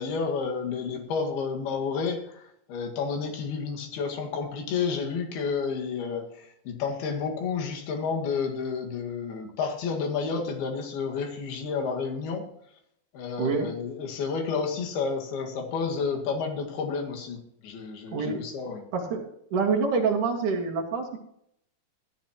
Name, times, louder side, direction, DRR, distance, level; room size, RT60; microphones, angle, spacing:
voice 1, 0.0-12.5 13.1-18.8, left 5 dB, 60° left, 2 dB, 3.4 m, -30 dB
voice 2, 13.4-13.7 18.1-18.4 18.9-21.2, right 5 dB, 55° right, 0 dB, 2.5 m, -26 dB
14.5 x 13.0 x 3.0 m, 0.73 s
omnidirectional pair, 5.7 m